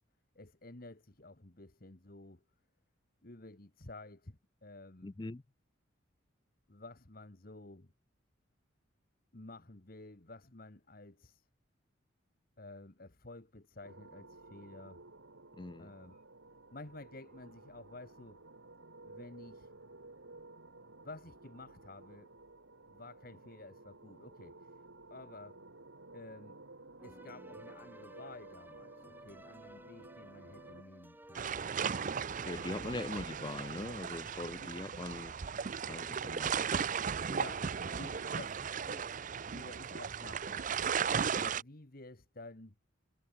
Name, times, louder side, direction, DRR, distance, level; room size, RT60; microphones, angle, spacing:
voice 1, 0.3-2.4 3.2-5.1 6.7-7.9 9.3-11.5 12.6-15.0 15.8-16.2 16.7-18.4 19.0-19.7 21.0-22.3 22.9-24.7 25.1-25.6 26.1-26.6 27.0-31.6 32.7-33.1 34.6-34.7 37.3-39.1 39.5-41.0 41.4-42.7, left 2 dB, 45° left, 1.6 m, -52 dB
voice 2, 5.0-5.4 15.6-15.9 32.4-35.3 35.9-36.5, left 2 dB, 25° left, 0.4 m, -41 dB
sound 1, 13.8-30.8, right 2 dB, 75° right, 2.7 m, -55 dB
sound 2, 27.0-32.8, right 1 dB, 10° right, 3.9 m, -55 dB
sound 3, 31.3-41.6, right 6 dB, 40° right, 0.5 m, -36 dB
head